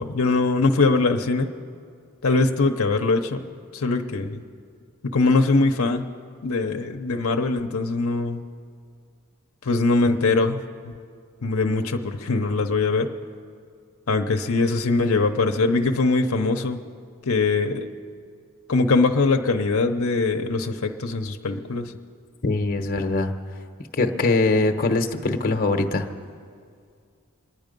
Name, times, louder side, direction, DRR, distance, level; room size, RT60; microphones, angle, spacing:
voice 1, 0.0-1.5 2.2-3.4 3.7-4.4 5.1-6.1 6.4-8.4 9.6-10.9 11.4-13.1 14.1-16.8 17.3-17.9 18.7-21.9, left 3 dB, 75° left, 4 dB, 0.8 m, -22 dB
voice 2, 22.4-23.3 24.0-26.1, left 2 dB, 45° left, 5 dB, 0.9 m, -22 dB
26.0 x 10.0 x 5.3 m, 2.2 s
head